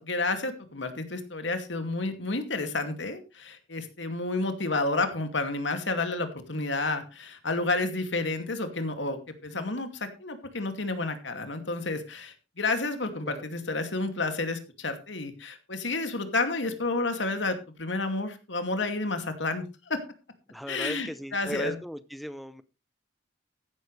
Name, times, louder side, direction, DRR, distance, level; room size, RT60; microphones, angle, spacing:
voice 1, 0.0-9.9 10.2-20.0 20.7-21.8, left 3 dB, 85° left, 7 dB, 2.4 m, -30 dB
voice 2, 20.5-22.6, equal, ahead, 12 dB, 0.6 m, -37 dB
14.5 x 11.5 x 3.3 m, 0.29 s
head